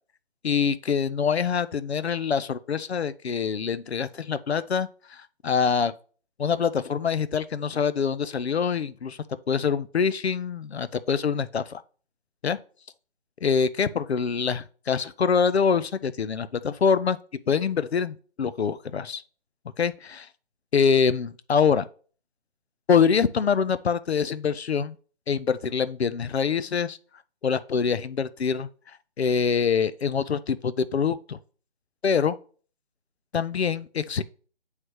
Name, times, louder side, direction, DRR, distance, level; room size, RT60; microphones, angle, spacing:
voice 1, 0.4-5.9 6.4-9.2 9.5-11.8 12.4-12.6 13.4-17.2 17.5-19.2 19.8-20.3 20.7-21.9 22.9-24.9 25.3-27.0 27.4-28.7 29.2-31.4 32.0-32.4 33.3-34.2, left 6 dB, 70° left, 0.6 m, -25 dB
9.5 x 3.2 x 3.1 m
figure-of-eight pair, 160°, 33 cm